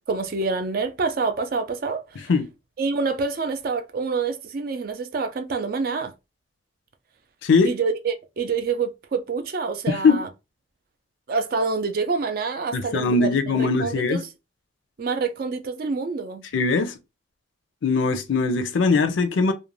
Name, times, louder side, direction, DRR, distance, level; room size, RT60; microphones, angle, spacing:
voice 1, 0.1-2.3 2.8-6.1 7.6-10.3 11.3-14.2 15.0-16.4, right 4 dB, 45° right, 0.4 m, -27 dB
voice 2, 7.4-7.7 9.9-10.2 12.7-14.2 16.5-16.9 17.8-19.5, left 4 dB, 75° left, 0.4 m, -21 dB
2.4 x 2.1 x 3.0 m
head